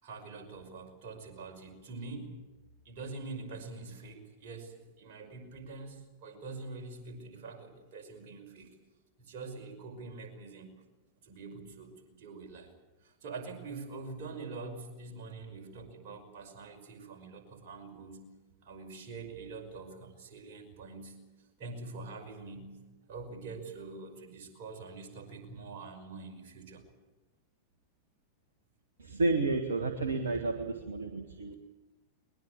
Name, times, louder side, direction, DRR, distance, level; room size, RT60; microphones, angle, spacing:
voice 1, 0.0-2.4 2.8-8.7 9.2-10.7 11.2-12.7 13.0-18.3 18.6-21.2 21.6-22.7 23.0-26.8, right 3 dB, 50° right, 3 dB, 5.6 m, -45 dB
voice 2, 29.0-31.5, right 3 dB, 70° right, 6 dB, 1.6 m, -31 dB
21.5 x 21.0 x 8.6 m, 1.2 s
figure-of-eight pair, 90°, 0 cm